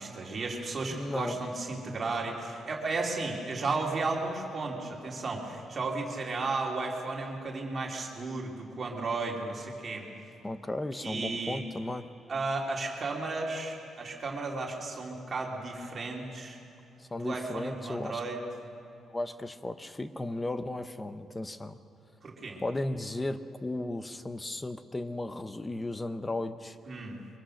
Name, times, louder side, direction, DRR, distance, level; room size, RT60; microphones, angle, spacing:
voice 1, 0.0-10.0 11.0-11.6 12.3-16.6 17.2-18.4 22.2-22.6 26.9-27.2, right 3 dB, 30° right, -1 dB, 3.0 m, -34 dB
voice 2, 0.9-1.4 10.4-12.0 17.0-18.2 19.1-21.8 22.6-26.8, left 2 dB, 15° left, 11 dB, 0.7 m, -35 dB
23.0 x 22.5 x 6.5 m, 2.8 s
cardioid pair, 160°, 0 cm